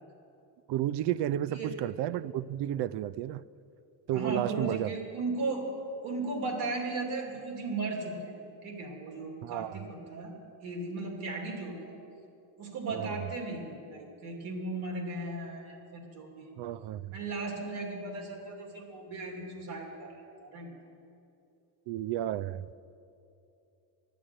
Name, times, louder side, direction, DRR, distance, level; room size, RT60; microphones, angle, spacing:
voice 1, 0.7-3.4 4.1-4.9 9.4-9.9 12.9-13.2 16.6-17.2 21.9-22.7, right 12 dB, 55° right, 0.5 m, -32 dB
voice 2, 4.1-5.7 6.0-8.3 8.6-10.3 10.6-12.0 12.6-16.5 17.1-20.1 20.4-20.7, right 3 dB, 75° right, 2.8 m, -36 dB
11.5 x 8.4 x 8.9 m
supercardioid pair, 85°, 49 cm